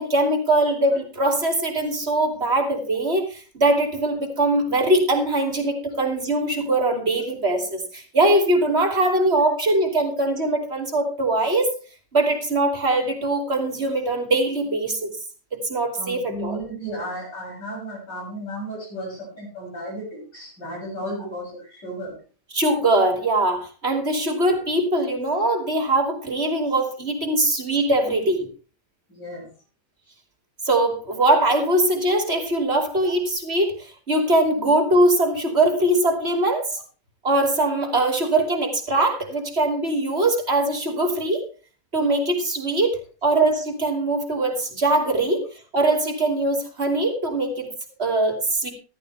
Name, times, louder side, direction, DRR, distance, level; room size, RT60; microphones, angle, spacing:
voice 1, 0.0-11.8 12.1-15.1 15.5-16.6 22.5-28.5 30.6-36.8 37.2-41.4 41.9-45.4 45.7-47.7 48.0-48.7, right 2 dB, 35° right, 3 dB, 3.1 m, -22 dB
voice 2, 16.0-22.2 29.1-29.5 33.0-33.1, equal, 85° left, -4 dB, 8.0 m, -34 dB
14.0 x 13.5 x 3.4 m, 0.36 s
omnidirectional pair, 1.9 m